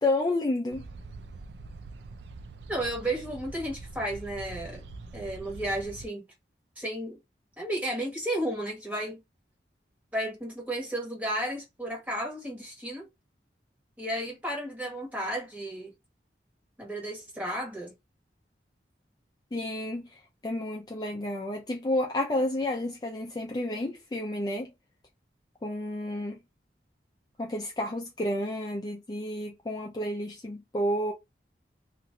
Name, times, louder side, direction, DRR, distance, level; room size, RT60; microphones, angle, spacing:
voice 1, 0.0-0.8 19.5-20.0 20.4-24.7 25.6-26.4 27.4-31.1, left 1 dB, 25° left, 0.4 m, -30 dB
sound 1, 0.7-6.1, right 3 dB, 75° right, 0.4 m, -44 dB
voice 2, 2.7-4.8 5.1-6.2 6.8-7.2 7.6-9.2 10.1-13.1 14.0-15.9 16.8-17.9, right 1 dB, 10° right, 1.2 m, -33 dB
2.9 x 2.5 x 2.5 m
head